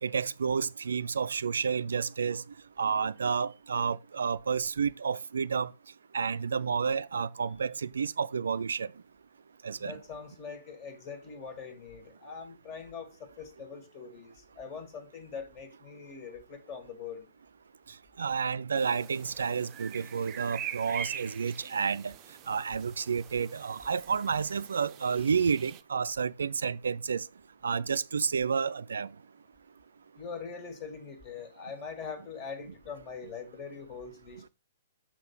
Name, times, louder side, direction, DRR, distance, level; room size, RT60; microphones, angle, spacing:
voice 1, 0.0-2.4 2.8-5.7 6.1-8.9 9.6-9.9 18.2-22.1 22.5-27.3 27.6-29.1, right 6 dB, 70° right, 0.3 m, -30 dB
voice 2, 9.8-17.3 30.2-34.5, left 5 dB, 30° left, 1.9 m, -43 dB
sound 1, 18.8-25.8, right 9 dB, 30° right, 0.6 m, -44 dB
6.6 x 3.7 x 5.4 m
figure-of-eight pair, 120°, 0 cm